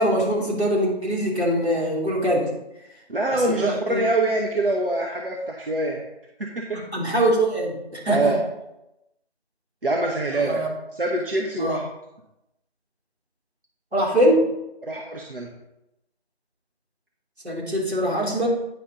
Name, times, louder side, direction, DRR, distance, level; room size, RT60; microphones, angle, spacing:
voice 1, 0.0-2.5 3.3-4.1 6.7-8.3 10.3-10.7 11.6-11.8 13.9-14.5 17.4-18.5, right 1 dB, 80° right, -3 dB, 3.3 m, -23 dB
voice 2, 3.1-6.0 6.4-6.8 8.1-8.4 9.8-10.6 11.0-11.8 14.9-15.5, right 2 dB, 60° right, 0 dB, 1.1 m, -24 dB
9.3 x 5.3 x 3.9 m, 0.89 s
figure-of-eight pair, 165°, 32 cm